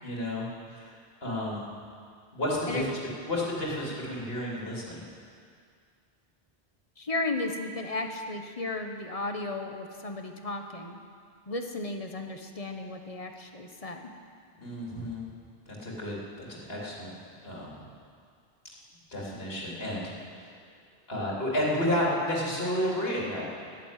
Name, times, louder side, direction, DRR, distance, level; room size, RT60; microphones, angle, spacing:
voice 1, 0.0-0.9 1.2-1.7 2.3-3.0 3.3-5.1 14.6-15.3 15.7-17.1 17.4-17.7 19.1-20.5 21.1-23.5, left 1 dB, 70° left, -4 dB, 3.4 m, -31 dB
voice 2, 7.0-11.0 11.5-14.1, left 2 dB, 35° left, 4 dB, 1.1 m, -34 dB
11.5 x 11.5 x 9.1 m, 2.2 s
omnidirectional pair, 1.0 m